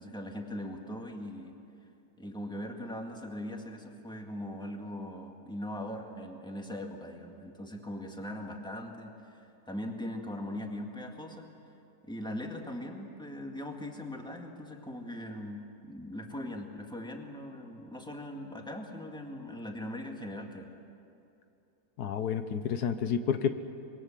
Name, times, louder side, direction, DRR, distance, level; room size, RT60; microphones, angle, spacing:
voice 1, 0.0-1.6 2.2-11.5 12.0-20.7, left 1 dB, 5° left, 2 dB, 2.0 m, -40 dB
voice 2, 22.0-23.5, left 7 dB, 80° left, 9 dB, 1.5 m, -30 dB
26.0 x 22.0 x 7.5 m, 2.8 s
omnidirectional pair, 1.7 m